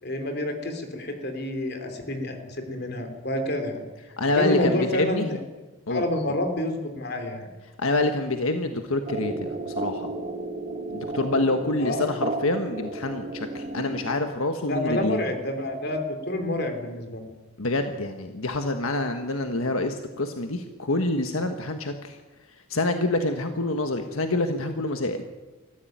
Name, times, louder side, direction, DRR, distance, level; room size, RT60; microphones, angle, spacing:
voice 1, 0.0-3.8 4.3-5.4 5.9-7.5 11.8-12.1 14.6-17.3, left 1 dB, 50° left, 6 dB, 3.3 m, -28 dB
voice 2, 4.2-5.3 5.9-6.0 7.8-10.1 10.9-15.2 17.6-22.2 22.7-25.2, left 2 dB, 80° left, 6 dB, 1.4 m, -26 dB
sound 1, 9.1-14.6, right 2 dB, 40° right, 1.9 m, -33 dB
20.5 x 14.5 x 9.4 m, 1.2 s
head